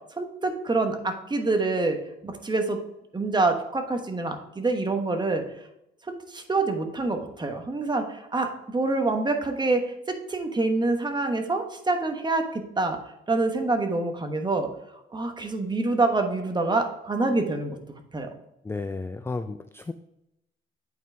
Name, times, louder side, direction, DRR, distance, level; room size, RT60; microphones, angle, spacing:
voice 1, 0.2-2.8 3.1-5.4 6.1-13.0 13.3-14.7 15.1-17.8 18.1-18.3, right 3 dB, 20° right, 5 dB, 1.2 m, -26 dB
voice 2, 18.6-19.9, left 3 dB, 10° left, 9 dB, 0.3 m, -33 dB
8.5 x 4.5 x 3.4 m, 0.86 s
cardioid pair, 90°, 20 cm